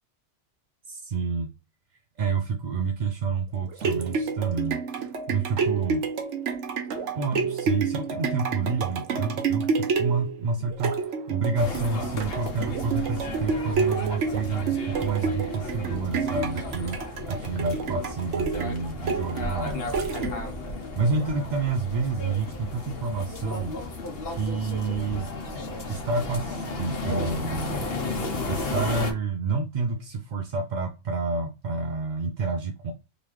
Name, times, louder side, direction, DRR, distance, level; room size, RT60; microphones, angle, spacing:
voice 1, 0.9-1.5 2.2-6.1 7.2-19.9 21.0-23.8 24.3-25.3 25.9-27.8 28.5-32.9, right 4 dB, 55° right, 0.5 m, -29 dB
sound 1, 3.5-20.7 21.2-21.3, right 5 dB, 85° right, 1.1 m, -29 dB
sound 2, 11.6-29.1, left 2 dB, 60° left, 1.1 m, -34 dB
3.8 x 3.0 x 3.1 m
omnidirectional pair, 1.2 m